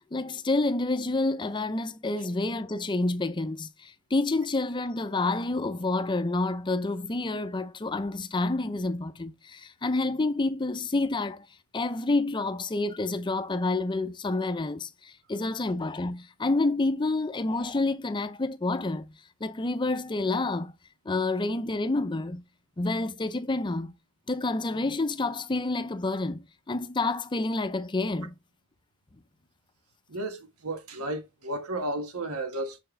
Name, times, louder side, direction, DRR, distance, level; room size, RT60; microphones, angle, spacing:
voice 1, 0.1-11.5 11.7-19.0 19.4-20.7 21.1-22.4 22.8-23.9 24.3-28.3, left 2 dB, 20° left, 0.5 m, -28 dB
voice 2, 30.1-32.8, right 1 dB, 90° right, 1.5 m, -33 dB
6.5 x 4.6 x 3.3 m
head